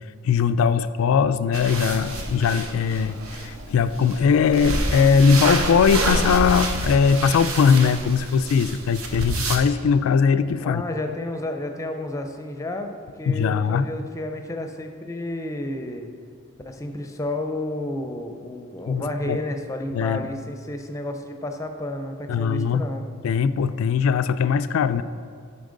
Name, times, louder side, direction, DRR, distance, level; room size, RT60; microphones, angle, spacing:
voice 1, 0.2-10.8 13.3-13.9 18.9-19.4 19.9-20.3 22.3-22.8 23.2-25.0, left 6 dB, 75° left, 13 dB, 0.3 m, -20 dB
sound 1, 1.5-9.6, right 2 dB, 75° right, 0.9 m, -28 dB
voice 2, 10.6-16.1 16.6-23.0, left 1 dB, 15° left, 5 dB, 0.5 m, -31 dB
8.8 x 5.7 x 3.8 m, 2.2 s
head